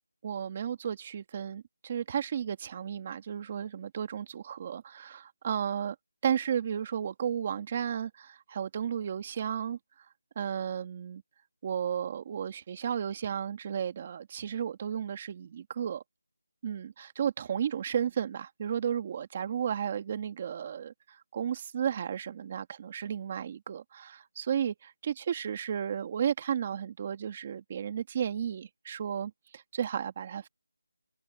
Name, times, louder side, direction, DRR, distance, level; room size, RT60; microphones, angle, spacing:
voice 1, 0.2-6.0 6.2-9.8 10.4-11.2 11.6-16.0 16.6-30.5, right 8 dB, 20° right, 2.1 m, -33 dB
figure-of-eight pair, 175°, 0 cm